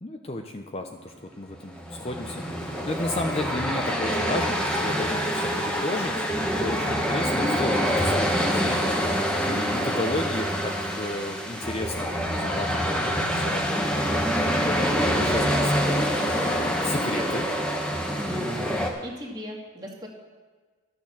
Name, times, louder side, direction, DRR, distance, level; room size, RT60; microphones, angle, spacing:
voice 1, 0.0-8.9 9.5-13.8 14.1-14.6 15.2-16.0 16.3-17.5, left 2 dB, 30° left, 4 dB, 0.6 m, -33 dB
sound 1, 1.6-18.9, equal, 5° left, 1.1 m, -26 dB
voice 2, 15.0-15.5 19.0-20.1, equal, 20° right, -1 dB, 1.9 m, -39 dB
12.5 x 6.4 x 7.3 m, 1.4 s
head